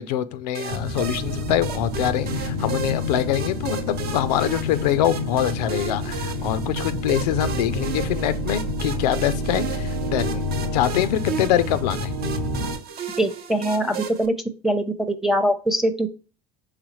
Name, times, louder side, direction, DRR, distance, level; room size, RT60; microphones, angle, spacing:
voice 1, 0.0-12.1, left 11 dB, 80° left, 0.4 m, -24 dB
sound 1, 0.5-14.3, right 6 dB, 50° right, 0.7 m, -35 dB
sound 2, 0.7-12.8, left 2 dB, 85° right, 1.2 m, -28 dB
voice 2, 13.2-14.3 14.6-16.1, right 1 dB, ahead, 0.6 m, -22 dB
4.8 x 3.5 x 3.0 m
hypercardioid pair, 80°, 20 cm